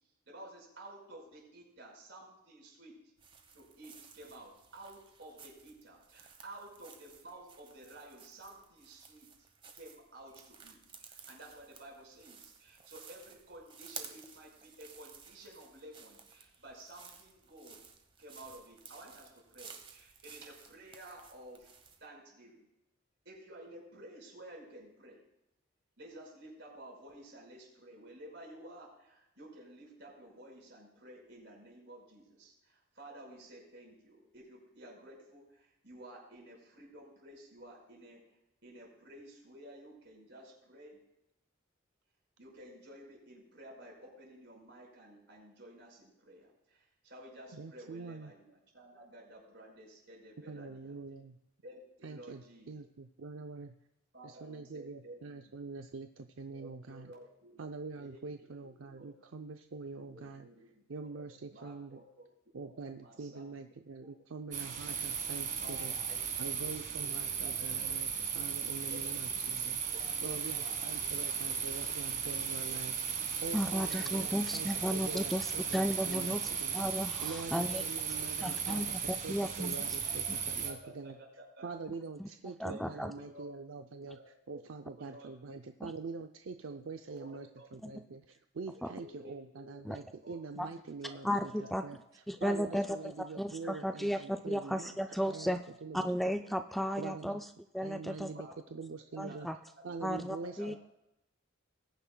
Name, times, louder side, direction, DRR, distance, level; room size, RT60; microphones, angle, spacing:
voice 1, 0.3-3.0 3.5-9.3 9.7-17.8 18.2-21.7 22.0-22.7 23.2-25.2 26.0-38.2 38.6-41.0 42.4-50.9 51.6-52.8 54.1-55.3 56.6-57.6 57.9-58.2 58.6-59.1 60.0-61.2 61.5-62.3 62.5-63.4 65.6-65.8 66.1-66.5 67.0-67.1 67.4-67.9 68.2-68.3 68.9-69.1 69.5-71.1 71.4-72.0 73.8-74.5 75.1-75.2 75.4-75.5 76.1-76.2 77.7-78.8 79.5-80.3 80.6-81.1 81.6-81.7 82.7-83.5 84.1-84.3 84.5-84.6 85.0-85.6 86.7-86.8 87.0-87.6 88.7-90.4 91.0-91.2 91.6-91.9 92.5-93.0 95.2-95.3 96.4-96.8 98.3-98.9 99.3-99.4 99.8-100.0 100.4-100.7, right 1 dB, 60° right, -1 dB, 5.1 m, -53 dB
sound 1, 3.2-22.0, right 6 dB, 25° right, 1.1 m, -54 dB
voice 2, 47.5-48.3 50.5-51.4 52.0-53.7 54.2-57.1 57.6-60.5 60.9-62.0 62.5-65.9 66.4-69.8 70.2-76.8 77.2-81.2 81.6-84.2 84.5-95.0 95.3-96.1 97.0-97.4 97.8-99.5 99.8-100.8, right 4 dB, 85° right, 6 dB, 0.6 m, -45 dB
sound 2, 64.5-80.7, right 7 dB, 40° right, 1.4 m, -36 dB
voice 3, 73.5-77.8 78.4-79.7 82.2-82.3 82.6-83.1 85.8-85.9 87.8-88.0 88.8-88.9 89.8-90.0 90.6-90.7 91.2-91.8 92.3-95.6 95.9-97.5 97.7-98.3 99.2-99.6 100.0-100.8, equal, ahead, 7 dB, 0.3 m, -34 dB
20.5 x 10.0 x 2.3 m, 0.88 s
head